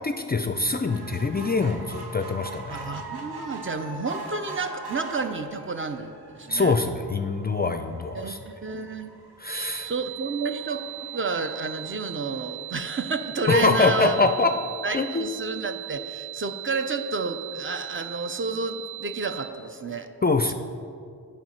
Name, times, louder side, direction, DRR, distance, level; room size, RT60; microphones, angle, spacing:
voice 1, 0.0-3.0 6.5-8.4 9.4-9.9 13.5-14.5 14.9-15.3 20.2-20.5, left 3 dB, 25° left, 7 dB, 0.4 m, -24 dB
sound 1, 0.9-13.5 14.0-14.1 14.4-14.5 14.8-14.9, right 3 dB, 90° right, 0.9 m, -42 dB
voice 2, 2.7-6.7 8.1-9.1 9.8-10.8 11.1-14.2 14.8-20.1 20.5-20.6, right 4 dB, 35° right, 7 dB, 0.5 m, -30 dB
sound 2, 9.5-19.5, right 18 dB, 65° right, 1.4 m, -38 dB
7.6 x 5.1 x 5.6 m, 2.4 s
cardioid pair, 70°, 38 cm